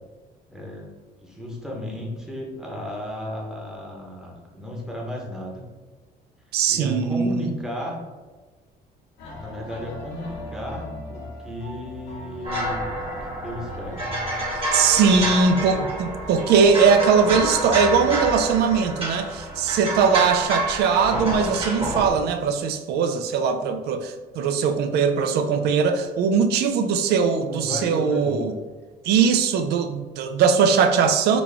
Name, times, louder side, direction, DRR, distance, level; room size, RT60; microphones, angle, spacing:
voice 1, 0.5-0.9 1.2-5.7 6.7-8.1 9.4-12.9 13.4-14.1 27.4-28.5, left 1 dB, 5° right, -2 dB, 0.9 m, -34 dB
voice 2, 6.5-7.6 14.5-28.5 29.0-31.4, right 6 dB, 75° right, 8 dB, 0.4 m, -20 dB
sound 1, 9.2-19.0, equal, 85° left, 1.1 m, -39 dB
sound 2, 12.4-22.1, right 1 dB, 35° right, 1.3 m, -28 dB
4.0 x 2.3 x 3.4 m, 1.3 s
cardioid pair, 110°, 17 cm